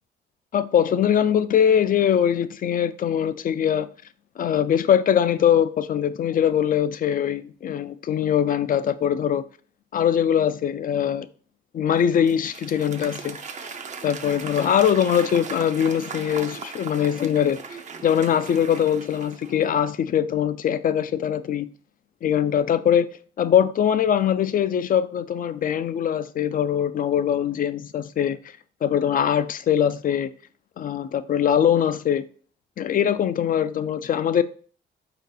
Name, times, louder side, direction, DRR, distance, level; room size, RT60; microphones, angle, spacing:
voice 1, 0.5-3.9 4.4-9.4 9.9-11.3 11.7-13.4 14.0-17.6 18.0-21.7 22.2-23.1 23.4-28.4 28.8-30.3 30.8-32.3 32.8-34.4, left 9 dB, 45° left, 0.4 m, -22 dB
Applause / Crowd, 12.0-19.8, right 5 dB, 35° right, 0.5 m, -38 dB
4.5 x 2.8 x 3.8 m
cardioid pair, 90°, 20 cm